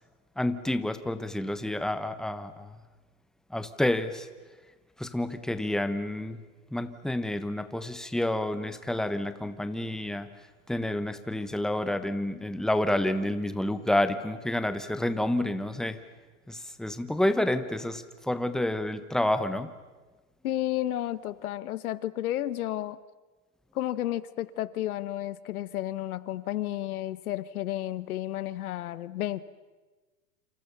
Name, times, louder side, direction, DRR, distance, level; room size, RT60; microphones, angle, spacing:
voice 1, 0.4-2.7 3.5-4.3 5.0-6.4 6.7-10.3 10.7-16.0 16.5-19.7, left 1 dB, ahead, 11 dB, 1.1 m, -29 dB
voice 2, 20.4-23.0 23.7-29.4, left 13 dB, 80° left, 16 dB, 1.4 m, -32 dB
28.5 x 27.5 x 6.9 m, 1.3 s
supercardioid pair, 145°, 43 cm